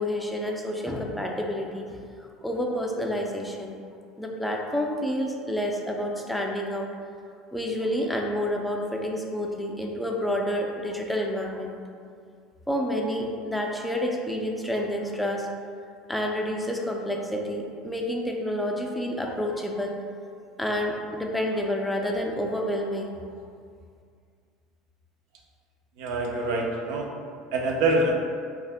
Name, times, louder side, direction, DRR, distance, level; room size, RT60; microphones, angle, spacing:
voice 1, 0.0-3.8 4.2-6.9 7.5-11.8 12.7-15.5 16.1-20.0 20.6-23.2, equal, 5° left, 0 dB, 0.4 m, -29 dB
voice 2, 26.0-27.1 27.5-28.1, right 2 dB, 70° right, 1 dB, 0.5 m, -25 dB
2.6 x 2.3 x 3.4 m, 2.2 s
supercardioid pair, 95°, 0 cm